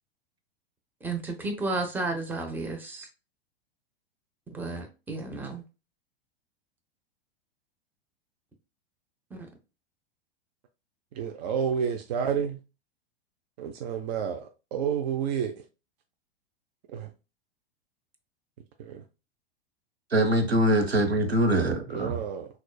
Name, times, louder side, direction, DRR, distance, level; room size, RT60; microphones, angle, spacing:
voice 1, 1.0-3.1 4.5-5.6, right 3 dB, 5° right, 0.7 m, -32 dB
voice 2, 11.2-12.6 13.6-15.5 16.9-17.1 18.8-19.0 21.9-22.5, right 7 dB, 45° right, 0.5 m, -30 dB
voice 3, 20.1-22.2, right 1 dB, 85° right, 1.0 m, -23 dB
6.0 x 2.4 x 2.2 m
figure-of-eight pair, 95°, 30 cm